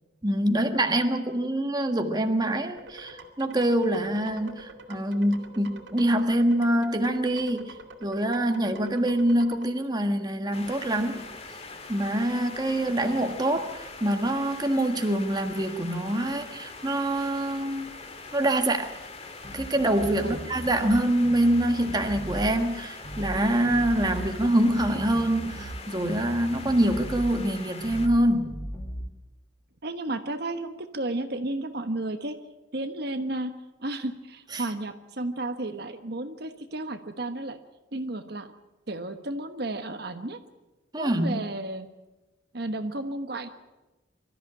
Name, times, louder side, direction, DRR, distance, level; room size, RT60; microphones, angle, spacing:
voice 1, 0.2-11.3 11.9-17.9 18.3-18.9 19.5-28.5 34.5-34.6 40.9-41.4, right 1 dB, 20° right, 5 dB, 1.6 m, -25 dB
sound 1, 2.8-9.6, right 2 dB, 80° right, 2.5 m, -46 dB
sound 2, 10.5-28.1, left 3 dB, 35° left, 2.0 m, -43 dB
sound 3, 19.4-21.0 21.2-22.5 23.0-23.4 23.6-25.8 26.0-27.3 27.8-28.2 28.4-29.0, equal, 15° left, 4.7 m, -37 dB
voice 2, 29.8-32.4 32.7-33.5 33.8-37.6 37.9-38.5 38.9-40.4 41.0-41.9 42.5-43.5, right 2 dB, 60° right, 7 dB, 1.3 m, -33 dB
24.5 x 14.0 x 8.8 m, 1.1 s
head